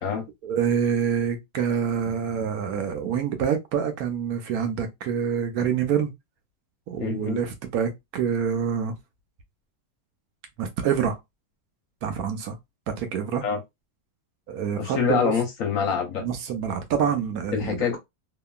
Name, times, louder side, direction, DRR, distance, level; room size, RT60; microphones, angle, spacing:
voice 1, 0.4-6.1 6.9-8.9 10.6-11.2 12.0-12.6 12.9-13.4 14.5-15.3 16.2-18.0, right 7 dB, 70° right, 1.0 m, -26 dB
voice 2, 7.0-7.4 13.4-13.6 14.7-16.2 17.5-18.0, left 6 dB, 60° left, 1.0 m, -25 dB
2.8 x 2.4 x 2.2 m
omnidirectional pair, 1.7 m